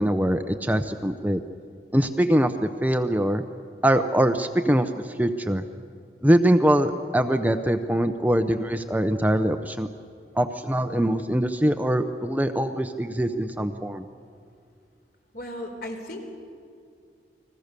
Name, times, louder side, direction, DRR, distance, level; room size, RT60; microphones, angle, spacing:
voice 1, 0.0-1.4 1.9-3.4 3.8-5.6 6.2-9.9 10.3-14.1, right 1 dB, 10° right, 7 dB, 0.7 m, -23 dB
voice 2, 15.3-16.3, left 1 dB, 55° left, 3 dB, 4.2 m, -35 dB
30.0 x 21.5 x 6.8 m, 2.4 s
head